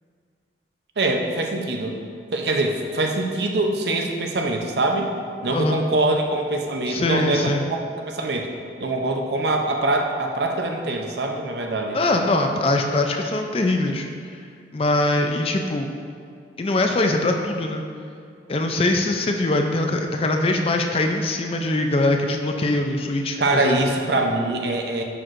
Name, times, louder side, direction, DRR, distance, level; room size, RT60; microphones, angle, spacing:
voice 1, 1.0-2.0 2.3-5.1 5.4-7.5 8.1-8.5 8.8-12.0 23.4-25.0, right 2 dB, 70° right, 2 dB, 0.6 m, -23 dB
voice 2, 6.9-7.6 11.9-14.1 14.7-15.9 16.6-17.8 18.5-23.8, left 2 dB, 30° left, 4 dB, 0.4 m, -22 dB
10.5 x 4.4 x 2.5 m, 2.3 s
head